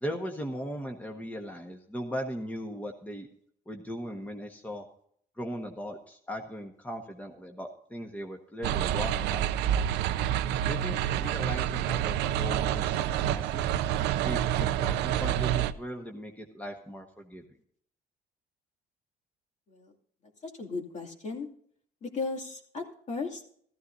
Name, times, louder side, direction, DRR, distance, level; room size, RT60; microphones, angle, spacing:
voice 1, 0.0-3.3 3.7-4.8 5.4-9.5 10.7-13.7 14.2-17.4, equal, 10° left, 2 dB, 1.4 m, -38 dB
sound 1, 8.6-15.7, right 11 dB, 90° right, 0.6 m, -28 dB
voice 2, 20.4-21.5 22.0-23.5, left 4 dB, 45° left, 1 dB, 2.7 m, -36 dB
14.5 x 14.5 x 2.7 m, 0.63 s
cardioid pair, 110°, 17 cm